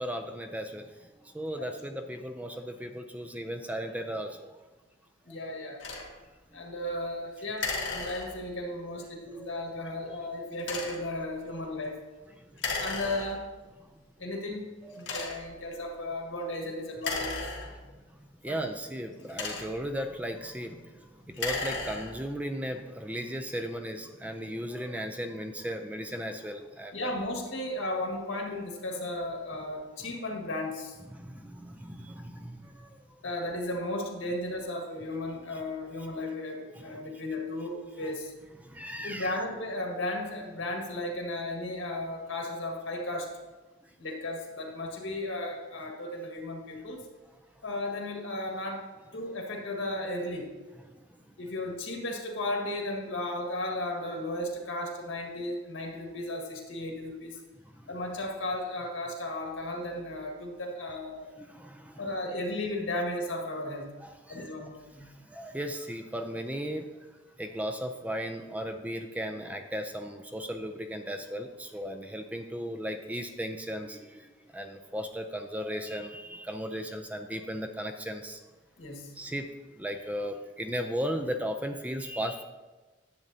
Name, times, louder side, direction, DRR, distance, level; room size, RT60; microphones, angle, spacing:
voice 1, 0.0-4.5 9.4-9.6 12.4-12.8 13.9-14.0 14.8-15.3 18.4-27.1 31.1-33.2 36.8-37.0 38.0-38.1 38.6-39.4 50.8-51.0 57.8-57.9 61.4-62.1 64.0-64.5 65.0-66.9 67.4-78.4 79.1-79.5 79.8-82.4, equal, 5° right, 5 dB, 0.4 m, -36 dB
voice 2, 5.3-5.8 6.5-12.0 12.8-13.4 14.2-14.7 14.9-17.5 18.4-18.7 26.9-31.0 33.2-38.3 39.0-43.3 44.0-47.0 47.6-48.8 49.1-50.5 51.4-57.4 57.9-61.3 62.0-63.9 64.3-65.1 78.8-79.1, left 1 dB, 85° left, 1 dB, 1.6 m, -35 dB
sound 1, 5.8-6.1 7.6-8.6 10.6-11.1 12.6-13.6 14.3-14.4 15.0-15.6 16.9-18.1 19.1-20.0 21.2-22.3, left 3 dB, 70° left, 1.5 m, -35 dB
10.5 x 7.3 x 2.7 m, 1.2 s
head